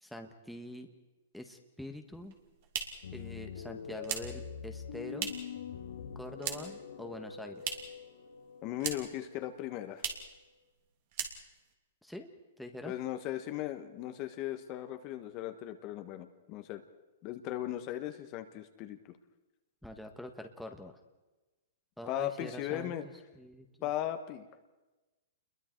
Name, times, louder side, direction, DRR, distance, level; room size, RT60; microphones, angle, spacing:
voice 1, 0.0-0.9 1.3-2.3 3.1-5.3 6.1-7.9 12.0-12.3 12.6-12.9 19.8-20.9 22.0-22.9 23.3-23.7, left 1 dB, ahead, 3 dB, 1.5 m, -45 dB
sound 1, 2.2-5.6 5.9-6.9 7.1-8.1 8.3-9.3 9.5-9.6 9.9-10.4 10.7-10.8 11.1-11.7, right 8 dB, 50° right, 2.9 m, -39 dB
sound 2, 3.0-10.5, left 7 dB, 80° left, 2.0 m, -45 dB
voice 2, 8.6-10.1 12.8-16.8 17.2-19.2 22.1-23.0 23.8-24.5, left 13 dB, 35° left, 8 dB, 1.5 m, -37 dB
28.5 x 22.0 x 4.7 m, 1.1 s
hypercardioid pair, 145°, 0 cm